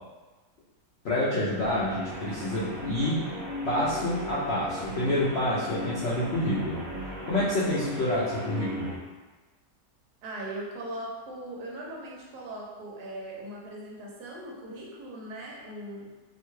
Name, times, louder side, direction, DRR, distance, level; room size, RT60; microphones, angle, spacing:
voice 1, 1.0-3.2 3.6-8.9, left 1 dB, 75° left, -8 dB, 0.5 m, -28 dB
Guitar, 1.6-9.0, left 1 dB, ahead, 1.0 m, -37 dB
voice 2, 10.2-16.1, right 1 dB, 75° right, -4 dB, 1.2 m, -39 dB
3.0 x 2.2 x 3.0 m, 1.2 s
omnidirectional pair, 1.8 m